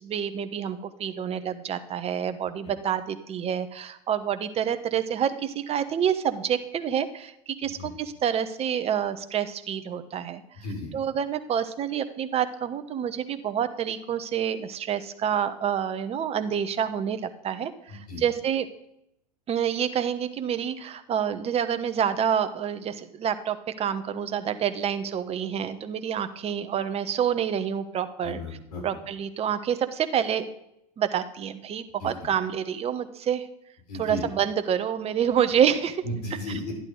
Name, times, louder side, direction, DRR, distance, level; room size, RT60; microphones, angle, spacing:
voice 1, 0.0-10.4 10.9-18.7 19.5-28.4 28.8-30.5 31.0-33.5 34.0-36.0, right 9 dB, 30° right, 10 dB, 1.0 m, -28 dB
voice 2, 17.9-18.2 28.2-29.0 32.0-32.1 33.9-34.2 36.0-36.7, left 1 dB, 80° left, -1 dB, 5.4 m, -34 dB
11.5 x 11.0 x 3.9 m, 0.80 s
hypercardioid pair, 100°, 20 cm